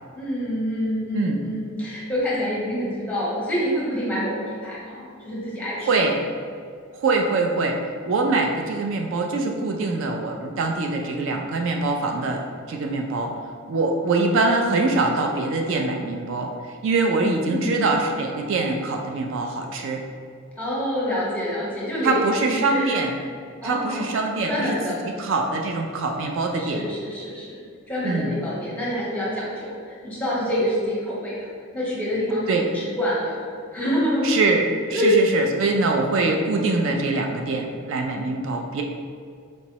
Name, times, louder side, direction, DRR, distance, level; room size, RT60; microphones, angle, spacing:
voice 1, 0.1-5.9 17.1-17.8 20.6-23.0 23.6-24.1 24.4-25.0 26.6-34.3 34.9-35.1, equal, 5° left, -7 dB, 0.9 m, -27 dB
voice 2, 5.8-6.2 6.9-7.8 8.0-12.4 12.7-13.3 13.7-16.5 16.8-20.0 22.0-23.1 23.6-24.8 25.2-26.8 28.0-28.3 32.5-32.6 34.2-38.8, right 3 dB, 60° right, 2 dB, 0.3 m, -23 dB
4.4 x 3.0 x 2.8 m, 2.2 s
head